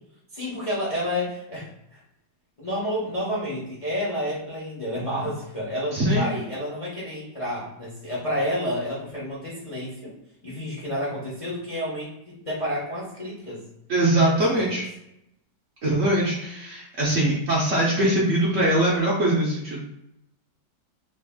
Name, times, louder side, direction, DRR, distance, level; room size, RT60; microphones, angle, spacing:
voice 1, 0.3-2.0 2.6-10.1 10.4-13.6 14.5-14.8, equal, 30° left, -7 dB, 0.6 m, -30 dB
voice 2, 5.9-6.3 13.9-14.9 15.8-19.8, right 1 dB, 55° right, -5 dB, 0.9 m, -22 dB
3.2 x 2.5 x 3.5 m, 0.82 s
omnidirectional pair, 2.0 m